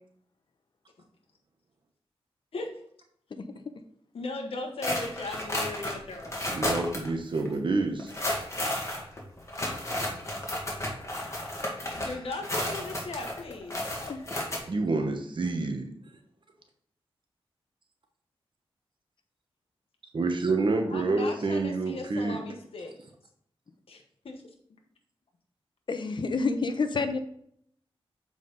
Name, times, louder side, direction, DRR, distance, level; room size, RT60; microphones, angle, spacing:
voice 1, 4.1-6.5 12.0-13.8 20.9-23.0 23.9-24.4, left 3 dB, 70° left, 2 dB, 1.2 m, -38 dB
sound 1, 4.8-7.1 7.3-7.5 8.0-14.6, left 1 dB, 30° left, 1.9 m, -32 dB
voice 2, 6.5-8.1 14.7-15.9 20.1-22.4, right 3 dB, 55° right, 4 dB, 1.1 m, -28 dB
voice 3, 25.9-27.2, left 4 dB, 50° left, 8 dB, 0.7 m, -29 dB
7.4 x 5.0 x 3.9 m, 0.67 s
wide cardioid pair, 80°, 10 cm